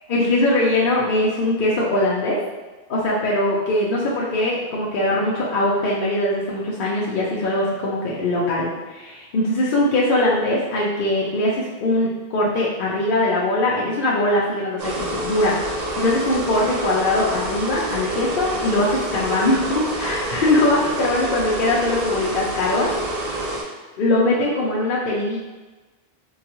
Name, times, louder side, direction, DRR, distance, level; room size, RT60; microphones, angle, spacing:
voice 1, 0.1-2.4 2.9-15.5 16.0-22.9 24.0-25.4, left 1 dB, 60° left, -5 dB, 0.7 m, -21 dB
sound 1, 14.8-23.6, right 1 dB, 45° right, 0.6 m, -27 dB
3.8 x 2.3 x 2.9 m, 1.2 s
omnidirectional pair, 1.1 m